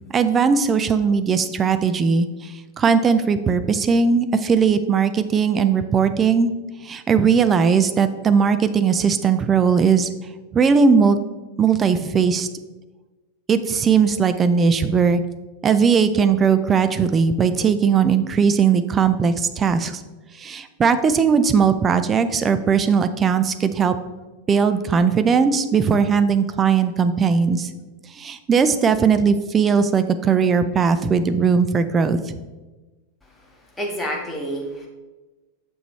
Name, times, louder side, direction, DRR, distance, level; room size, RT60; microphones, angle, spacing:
voice 1, 0.1-6.5 6.8-10.1 10.5-11.2 11.6-12.5 13.5-15.2 15.6-19.9 20.4-24.0 24.5-27.7 28.2-32.4, right 6 dB, 20° right, 10 dB, 0.4 m, -18 dB
voice 2, 33.8-34.9, equal, 10° left, -2 dB, 1.5 m, -28 dB
6.9 x 5.9 x 3.1 m, 1.2 s
figure-of-eight pair, 90°, 0 cm